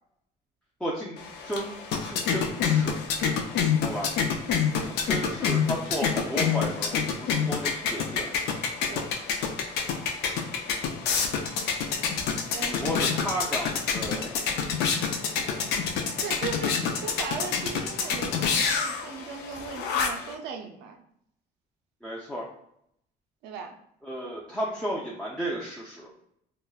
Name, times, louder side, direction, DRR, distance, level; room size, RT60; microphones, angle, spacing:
voice 1, 0.8-3.0 3.8-4.1 4.8-8.3 12.7-14.3 22.0-22.5 24.0-26.1, equal, 5° left, -5 dB, 0.4 m, -33 dB
sound 1, 1.2-20.3, left 6 dB, 80° left, 0.4 m, -28 dB
voice 2, 12.5-13.1 16.2-21.0 23.4-23.8, right 5 dB, 85° right, 4 dB, 0.5 m, -38 dB
3.0 x 2.1 x 2.3 m, 0.72 s
cardioid pair, 110°, 17 cm